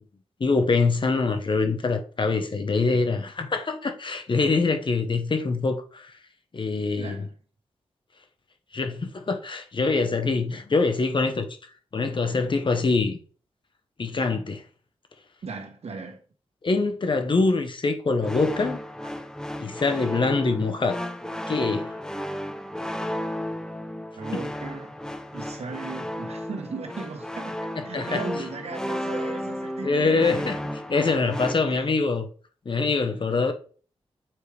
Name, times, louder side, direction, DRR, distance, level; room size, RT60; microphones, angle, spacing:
voice 1, 0.4-6.1 6.5-7.2 8.7-11.6 11.9-13.2 14.0-14.6 16.6-18.8 19.6-21.0 21.5-21.9 27.9-28.2 29.8-30.6 30.9-32.3 32.6-33.5, left 3 dB, 50° left, 1.0 m, -24 dB
voice 2, 7.0-7.3 15.4-16.2 19.0-19.3 20.5-20.6 24.2-24.9 25.3-27.5 27.8-30.5 31.7-31.9, right 4 dB, 75° right, 1.3 m, -37 dB
sound 1, 18.2-31.6, left 1 dB, 5° left, 0.7 m, -33 dB
7.4 x 4.8 x 3.4 m
wide cardioid pair, 80°, 11 cm